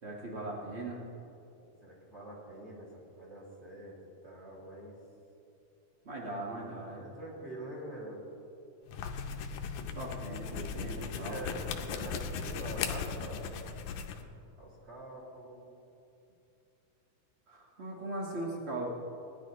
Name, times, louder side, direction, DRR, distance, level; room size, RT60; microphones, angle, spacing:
voice 1, 0.0-1.0 6.0-7.1 9.8-11.4 17.5-18.9, right 2 dB, 60° right, -3 dB, 0.6 m, -39 dB
voice 2, 1.8-4.0 4.2-5.0 6.7-8.2 10.9-13.6 14.6-15.7, right 1 dB, 25° right, -4 dB, 2.2 m, -45 dB
sound 1, 8.8-14.2, left 6 dB, 75° left, 1.9 m, -38 dB
20.5 x 11.0 x 3.1 m, 2.7 s
omnidirectional pair, 3.7 m